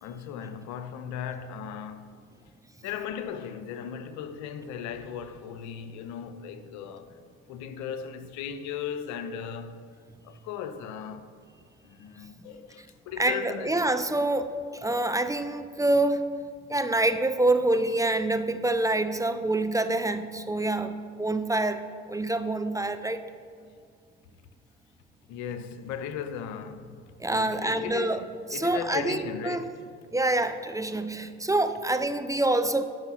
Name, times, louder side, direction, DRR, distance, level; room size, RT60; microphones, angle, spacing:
voice 1, 0.0-2.2 2.8-7.2 7.5-11.3 11.8-13.7 25.3-26.9 27.4-28.2 28.5-29.8, left 8 dB, 75° left, 0.7 m, -37 dB
voice 2, 13.2-16.2 16.7-23.2 27.2-28.2 28.5-29.6 30.1-32.8, right 2 dB, 10° right, 0.6 m, -26 dB
9.5 x 6.2 x 5.9 m
hypercardioid pair, 65°, 29 cm